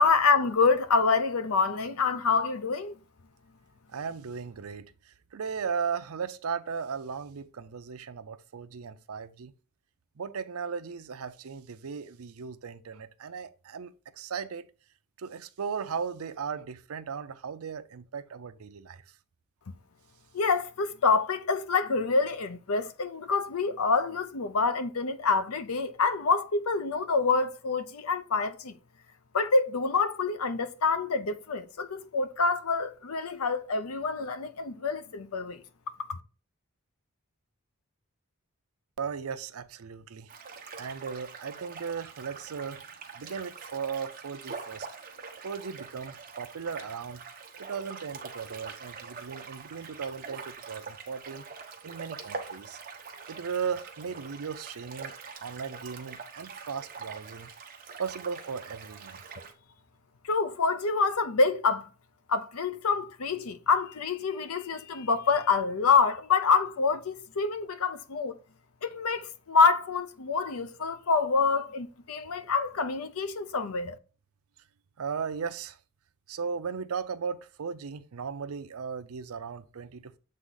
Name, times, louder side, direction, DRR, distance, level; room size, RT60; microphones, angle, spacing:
voice 1, 0.0-3.0 20.3-28.7 29.3-35.6 36.1-36.2 60.3-61.9 62.3-68.4 68.8-74.0, left 4 dB, 80° left, 0.6 m, -26 dB
voice 2, 3.9-9.5 10.2-14.7 15.2-19.0 39.0-40.3 40.8-42.8 43.2-44.9 45.4-47.2 47.6-51.4 51.8-52.8 53.3-57.5 58.0-59.3 75.0-75.8 76.3-80.2, right 6 dB, 85° right, 0.5 m, -37 dB
sound 1, 40.3-59.5, right 5 dB, 40° right, 0.9 m, -44 dB
7.6 x 3.5 x 3.9 m
head